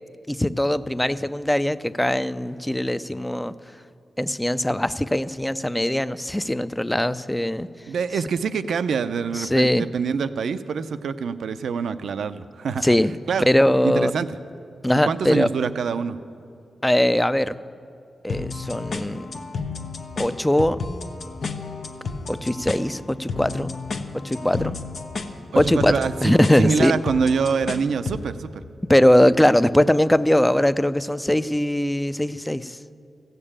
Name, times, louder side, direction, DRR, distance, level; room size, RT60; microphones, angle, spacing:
voice 1, 0.3-3.5 4.2-7.7 9.3-9.9 12.8-13.1 13.5-14.1 14.8-15.5 16.8-17.6 18.2-19.3 20.2-20.8 22.3-23.8 24.1-24.8 25.6-25.9 26.2-26.9 28.9-32.8, left 1 dB, 10° left, 14 dB, 0.4 m, -21 dB
voice 2, 7.9-13.0 13.3-13.5 13.8-14.3 15.0-16.2 25.6-28.6, right 5 dB, 85° right, 12 dB, 0.4 m, -25 dB
sound 1, 18.3-28.3, left 4 dB, 70° left, 0.8 m, -32 dB
15.0 x 6.7 x 8.7 m, 2.5 s
cardioid pair, 55°, 0 cm